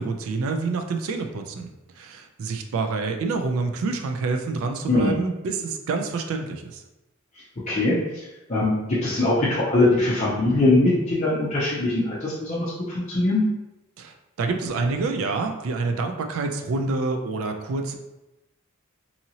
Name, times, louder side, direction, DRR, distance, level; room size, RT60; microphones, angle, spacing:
voice 1, 0.0-1.7 2.0-6.8 14.0-18.0, right 3 dB, 70° right, 4 dB, 0.4 m, -27 dB
voice 2, 8.5-13.4, left 2 dB, 35° left, -9 dB, 0.6 m, -21 dB
2.8 x 2.7 x 2.7 m, 0.99 s
head